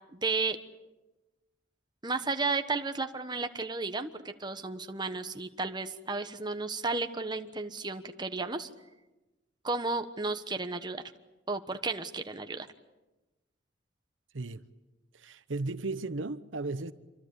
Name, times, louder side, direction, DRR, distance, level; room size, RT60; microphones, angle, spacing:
voice 1, 0.1-0.6 2.0-8.7 9.6-11.0 11.5-12.7, right 3 dB, 25° right, 1.3 m, -33 dB
voice 2, 15.1-16.9, right 3 dB, 85° right, 1.0 m, -35 dB
27.5 x 24.0 x 8.4 m
head